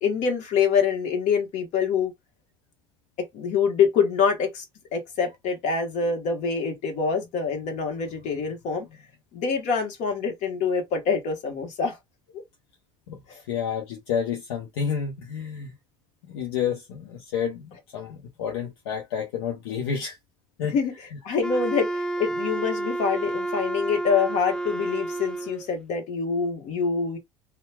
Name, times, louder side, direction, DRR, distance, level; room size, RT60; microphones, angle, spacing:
voice 1, 0.0-2.1 3.3-4.6 4.9-8.9 9.3-12.0 13.3-13.4 20.7-20.9 21.2-27.2, left 6 dB, 65° left, 1.2 m, -25 dB
voice 2, 13.5-15.7 16.3-20.2 20.6-20.7, left 7 dB, 85° left, 0.7 m, -30 dB
Wind instrument woodwind instrument, 21.4-25.7, right 2 dB, 5° left, 0.3 m, -30 dB
2.8 x 2.3 x 2.2 m
hypercardioid pair, 80°, 13 cm